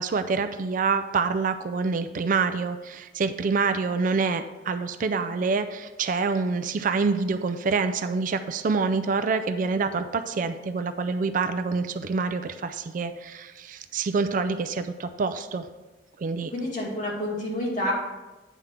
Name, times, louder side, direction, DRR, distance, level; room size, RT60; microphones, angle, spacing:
voice 1, 0.0-15.7 16.2-16.5, right 4 dB, 45° right, 10 dB, 0.4 m, -26 dB
voice 2, 16.5-17.9, left 1 dB, 45° left, -4 dB, 2.2 m, -28 dB
9.2 x 3.7 x 5.6 m, 1.1 s
head